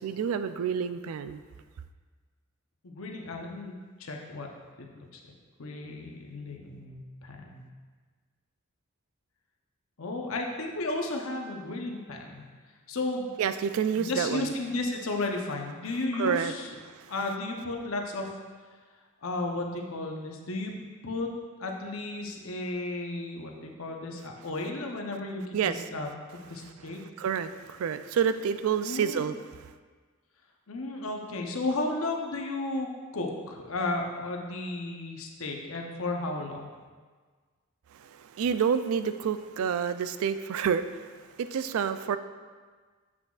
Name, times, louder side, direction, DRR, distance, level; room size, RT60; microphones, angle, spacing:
voice 1, 0.0-1.4 13.4-14.5 16.1-16.5 16.9-17.1 25.5-25.9 27.2-29.7 37.9-41.1 41.4-42.2, right 7 dB, 80° right, 12 dB, 0.3 m, -29 dB
voice 2, 2.8-3.7 4.0-4.5 4.8-5.2 5.6-7.7 10.0-12.4 12.9-13.3 14.0-16.7 17.1-18.3 19.2-20.7 21.0-21.3 21.6-25.5 25.9-26.1 26.5-27.0 28.8-29.2 30.7-32.9 33.1-36.7, left 2 dB, 75° left, 2 dB, 0.8 m, -33 dB
7.5 x 6.1 x 2.4 m, 1.5 s
head